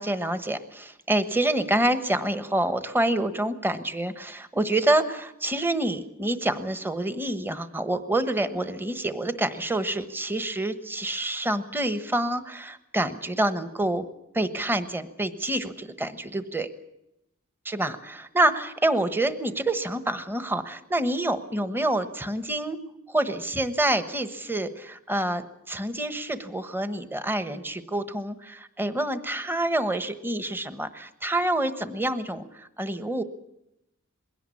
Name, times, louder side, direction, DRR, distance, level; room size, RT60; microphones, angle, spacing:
voice 1, 0.0-14.0 14.3-16.7 17.7-22.8 23.1-33.2, right 1 dB, 10° right, 11 dB, 1.2 m, -27 dB
21.5 x 17.5 x 8.5 m, 0.85 s
head